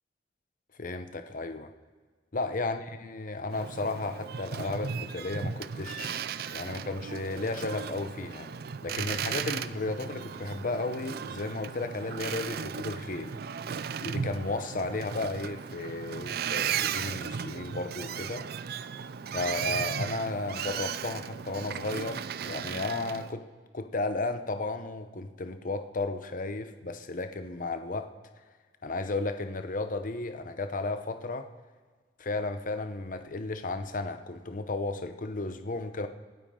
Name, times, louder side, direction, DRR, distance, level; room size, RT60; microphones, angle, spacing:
voice 1, 0.8-1.7 2.3-6.3 6.5-8.5 8.8-13.4 14.0-18.5 19.3-23.4 23.7-28.1 28.8-31.5 32.2-36.1, left 3 dB, 50° left, 8 dB, 0.9 m, -34 dB
Boat Water vehicle, 3.5-23.3, right 7 dB, 60° right, 0.5 m, -36 dB
25.5 x 9.1 x 3.8 m, 1.5 s
head